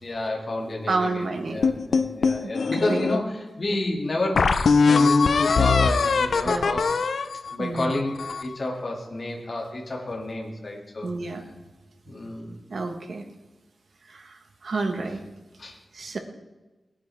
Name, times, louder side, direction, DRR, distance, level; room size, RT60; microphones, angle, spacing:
voice 1, 0.0-4.5 4.9-6.9 7.5-11.1 11.3-11.4 12.1-12.6 15.6-15.7, left 2 dB, 40° left, -1 dB, 2.6 m, -30 dB
voice 2, 0.9-1.6 2.9-3.1 6.4-6.7 7.6-8.0 11.0-11.4 12.7-13.2 14.1-15.2 15.9-16.2, right 3 dB, 60° right, 5 dB, 1.5 m, -29 dB
sound 1, 1.6-3.2 3.7-3.8 4.4-8.5, left 4 dB, 75° left, 0.6 m, -21 dB
19.5 x 9.8 x 3.6 m, 1.2 s
wide cardioid pair, 140°, 0 cm